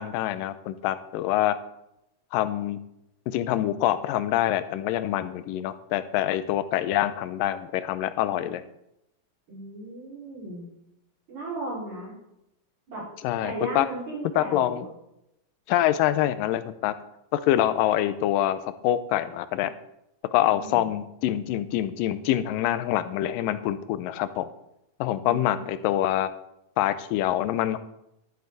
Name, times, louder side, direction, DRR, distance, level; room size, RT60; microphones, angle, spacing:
voice 1, 0.0-1.6 2.3-2.8 3.3-8.6 13.2-13.9 14.4-14.8 15.7-16.9 17.3-19.7 20.3-24.5 25.0-26.3 26.8-27.8, left 13 dB, 85° left, 13 dB, 2.2 m, -25 dB
voice 2, 9.5-10.7 11.3-12.1 12.9-13.1 13.4-14.9 20.5-20.9 25.2-25.6, right 2 dB, 55° right, -7 dB, 6.2 m, -36 dB
12.5 x 7.6 x 4.0 m, 0.84 s
omnidirectional pair, 3.9 m